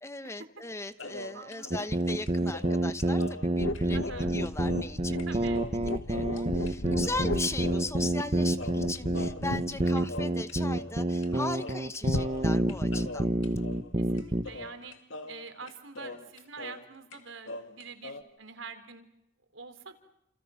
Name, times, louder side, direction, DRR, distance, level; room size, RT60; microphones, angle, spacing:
voice 1, 0.0-5.5 6.0-13.3, left 2 dB, 15° left, 11 dB, 1.0 m, -38 dB
sound 1, 1.0-4.9 5.2-5.3 5.5-6.7 7.0-8.3 8.6-11.0 11.2-11.3 11.6-16.9 17.1-18.2, left 2 dB, 70° left, 2.2 m, -43 dB
voice 2, 1.3-1.9 3.9-4.3 5.3-5.6 6.8-7.2 14.0-14.9 15.3-19.1 19.5-20.0, right 5 dB, 75° right, 7 dB, 3.8 m, -46 dB
sound 2, 1.7-14.4, right 1 dB, 30° right, 1.2 m, -28 dB
sound 3, 3.6-11.1 12.1-12.3, left 2 dB, 90° left, 1.2 m, -36 dB
30.0 x 28.5 x 5.8 m, 0.83 s
head